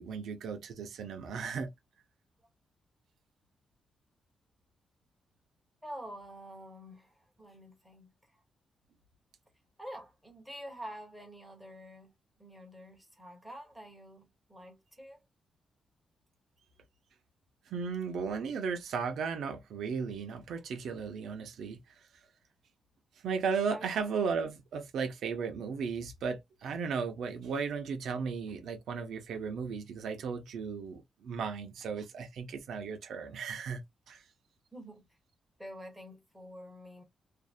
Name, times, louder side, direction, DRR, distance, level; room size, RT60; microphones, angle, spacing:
voice 1, 0.0-1.7 17.7-21.8 23.2-33.8 34.1-34.2, right 5 dB, 80° right, 0.6 m, -35 dB
voice 2, 5.8-8.1 9.8-12.1 12.4-15.2 23.7-23.9 34.7-35.0 35.6-37.0, equal, ahead, 1.0 m, -47 dB
2.6 x 2.1 x 2.4 m
wide cardioid pair, 160°, 0 cm